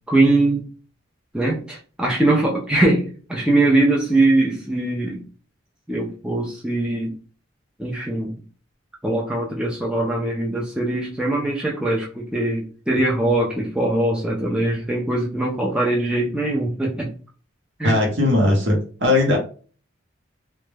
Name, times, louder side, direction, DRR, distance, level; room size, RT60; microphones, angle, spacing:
voice 1, 0.1-0.6 1.3-5.2 5.9-7.1 7.8-8.4 9.0-17.1 17.8-18.0, right 2 dB, 5° right, 0.4 m, -21 dB
voice 2, 17.8-19.4, left 2 dB, 60° right, 0.8 m, -18 dB
2.1 x 2.0 x 3.2 m
head